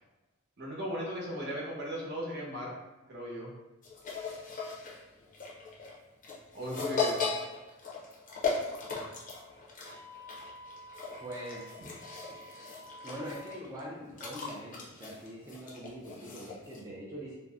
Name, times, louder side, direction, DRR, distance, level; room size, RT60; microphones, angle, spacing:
voice 1, 0.6-2.7 3.1-3.5 6.5-7.3, equal, 55° right, -4 dB, 0.8 m, -37 dB
sound 1, 3.8-16.8, left 4 dB, 40° left, 0.5 m, -38 dB
Wind instrument woodwind instrument, 9.8-13.5, left 1 dB, 85° left, 0.7 m, -50 dB
voice 2, 11.2-11.6 13.0-17.4, equal, 15° right, -6 dB, 0.4 m, -43 dB
2.6 x 2.0 x 3.4 m, 1.1 s
head